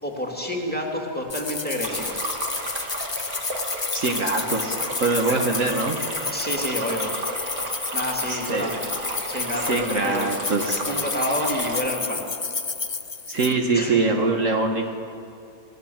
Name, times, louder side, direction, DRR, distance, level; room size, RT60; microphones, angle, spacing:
voice 1, 0.0-2.3 6.3-7.1 7.9-8.9 9.3-10.3 10.9-12.2 13.7-14.0, equal, 5° left, 0 dB, 3.0 m, -29 dB
sound 1, 1.3-13.5, left 4 dB, 40° left, 0.4 m, -31 dB
Stream, 1.8-11.8, right 2 dB, 70° right, 2.9 m, -33 dB
voice 2, 3.9-6.0 8.3-8.7 9.5-10.8 13.3-14.9, right 3 dB, 55° right, 3 dB, 1.8 m, -23 dB
28.5 x 16.5 x 7.4 m, 2.7 s
omnidirectional pair, 1.6 m